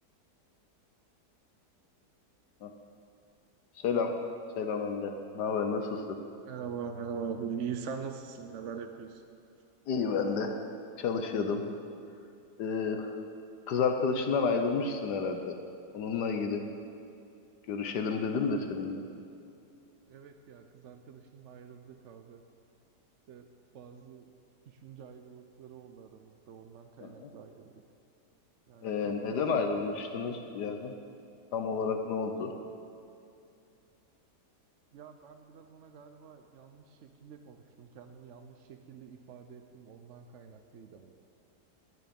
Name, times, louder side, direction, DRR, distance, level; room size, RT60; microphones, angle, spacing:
voice 1, 3.8-4.1 4.6-6.2 9.9-10.6 11.0-11.6 12.6-13.2 13.7-15.6 15.9-16.7 17.7-19.1 27.0-27.3 28.8-30.9 31.5-32.5, left 5 dB, 80° left, 5 dB, 1.5 m, -31 dB
voice 2, 6.5-9.2 20.1-22.4 23.3-23.4 23.7-24.2 24.7-27.7 28.7-29.4 30.2-30.3 34.9-41.1, right 6 dB, 55° right, 6 dB, 0.9 m, -43 dB
20.5 x 9.7 x 5.3 m, 2.5 s
omnidirectional pair, 1.8 m